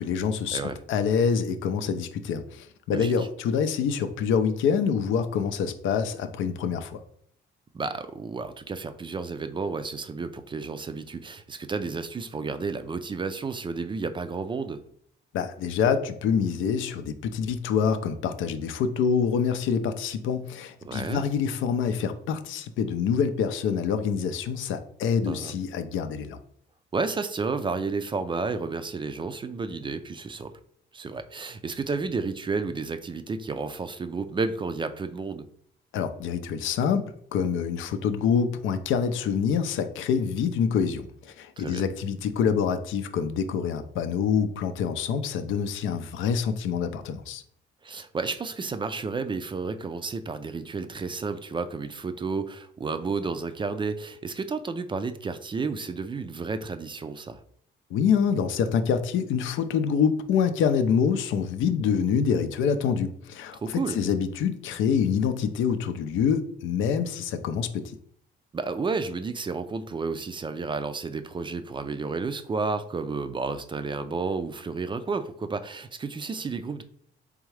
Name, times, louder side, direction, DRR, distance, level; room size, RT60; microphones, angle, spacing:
voice 1, 0.0-0.6 0.9-7.0 15.3-26.4 35.9-47.4 57.9-67.9, left 6 dB, 80° left, 9 dB, 0.5 m, -26 dB
voice 2, 2.9-3.3 7.7-14.8 20.8-21.2 25.3-25.5 26.9-30.5 30.9-35.5 41.6-41.8 47.8-57.4 63.5-64.0 68.5-76.8, right 4 dB, 25° right, 10 dB, 0.3 m, -31 dB
3.6 x 3.4 x 3.2 m, 0.63 s
cardioid pair, 90°, 20 cm